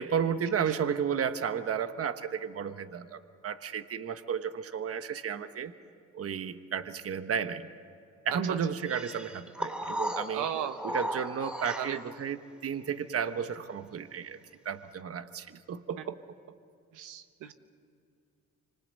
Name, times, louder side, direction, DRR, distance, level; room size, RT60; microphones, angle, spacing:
voice 1, 0.0-5.7 6.1-7.7 8.2-10.5 10.8-14.4 14.6-16.2 17.4-17.5, right 7 dB, 50° right, 10 dB, 1.2 m, -33 dB
sound 1, 8.8-12.2, equal, 5° right, 3.4 m, -36 dB
voice 2, 10.3-10.8 11.8-12.0 16.9-17.5, right 9 dB, 85° right, 8 dB, 1.3 m, -35 dB
26.5 x 25.5 x 8.2 m, 2.4 s
cardioid pair, 90°, 30 cm